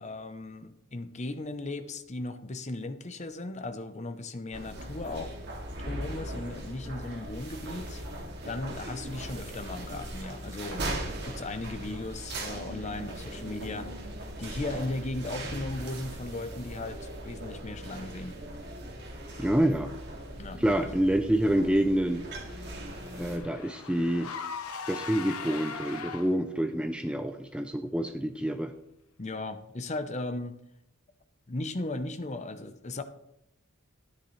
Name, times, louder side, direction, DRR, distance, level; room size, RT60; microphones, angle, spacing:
voice 1, 0.0-5.4 5.8-8.0 8.4-10.9 11.2-13.9 14.4-18.4 20.4-20.6 29.2-30.6 31.5-33.0, left 2 dB, 30° left, 10 dB, 0.7 m, -37 dB
sound 1, 4.5-23.4, right 1 dB, 50° right, 2.3 m, -39 dB
voice 2, 19.4-19.9 20.6-22.2 23.2-24.3 24.9-28.7, right 1 dB, 5° right, 8 dB, 0.4 m, -27 dB
Car / Engine, 21.6-26.6, left 5 dB, 85° left, 1.0 m, -41 dB
13.0 x 9.9 x 3.2 m, 0.78 s
head